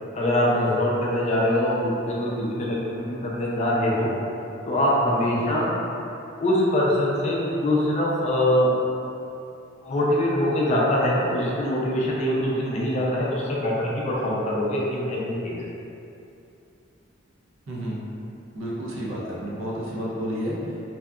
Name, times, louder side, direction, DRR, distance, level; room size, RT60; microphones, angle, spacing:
voice 1, 0.1-4.1 4.7-5.7 6.4-8.7 9.8-15.6, left 1 dB, 35° left, -4 dB, 0.4 m, -23 dB
voice 2, 17.7-18.0 18.5-21.0, equal, 80° right, -4 dB, 0.5 m, -31 dB
2.7 x 2.2 x 2.3 m, 2.7 s
head